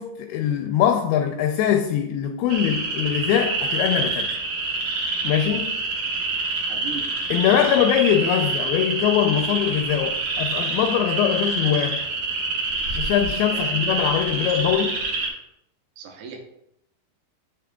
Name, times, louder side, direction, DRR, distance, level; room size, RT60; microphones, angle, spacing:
voice 1, 0.0-4.3 5.2-5.8 7.3-12.0 12.9-15.0, left 10 dB, 80° left, 2.4 m, -22 dB
sound 1, 2.5-15.3, right 3 dB, 55° right, 2.4 m, -26 dB
voice 2, 6.7-7.2 13.5-13.8 16.0-16.4, right 5 dB, 80° right, 2.9 m, -37 dB
8.7 x 6.5 x 2.3 m
omnidirectional pair, 4.6 m